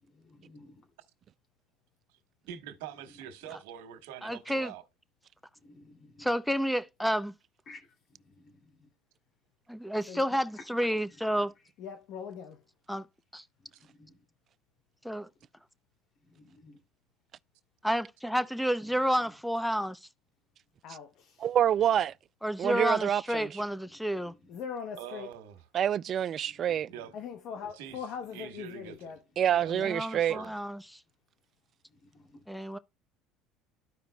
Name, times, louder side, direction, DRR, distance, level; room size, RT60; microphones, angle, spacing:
voice 1, 0.0-0.9 3.1-3.5 5.6-6.3 7.7-8.9 10.6-10.7 13.8-14.2 16.2-16.8 19.2-19.3 23.9-24.4 26.4-27.1 29.7-29.9 31.9-32.5, left 2 dB, 40° left, 2.7 m, -56 dB
voice 2, 2.5-4.8 25.0-25.6 26.9-27.1 27.6-29.1 29.5-29.7 30.0-30.6, right 9 dB, 85° right, 1.4 m, -45 dB
voice 3, 4.2-4.7 6.2-7.3 9.7-11.5 12.9-13.1 13.3-13.4 15.0-15.3 17.8-20.0 22.4-24.3 29.8-30.8 32.5-32.8, equal, ahead, 0.6 m, -30 dB
voice 4, 11.8-12.6 20.8-21.4 24.5-25.3 27.1-29.2 29.7-30.0, left 7 dB, 60° left, 0.9 m, -41 dB
voice 5, 21.4-22.1 22.6-23.5 25.7-26.9 29.4-30.4, right 10 dB, 40° right, 0.3 m, -27 dB
13.5 x 5.0 x 2.3 m
supercardioid pair, 115°, 0 cm